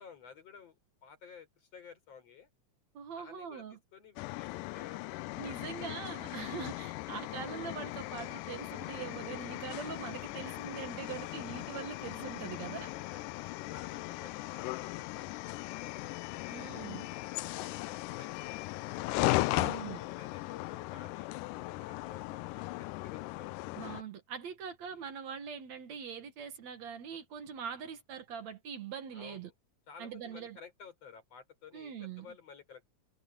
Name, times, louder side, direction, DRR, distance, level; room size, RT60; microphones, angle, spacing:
voice 1, 0.0-2.5 3.2-5.9 12.8-16.8 17.3-19.2 19.8-23.8 24.9-25.1 29.1-29.5 29.9-32.9, left 7 dB, 50° left, 5.2 m, -54 dB
voice 2, 2.9-3.8 5.4-12.9 16.5-17.1 19.5-20.0 23.8-29.5 30.0-30.6 31.7-32.3, right 7 dB, 60° right, 2.7 m, -42 dB
sound 1, 4.2-24.0, left 20 dB, 80° left, 2.1 m, -38 dB
omnidirectional pair, 3.8 m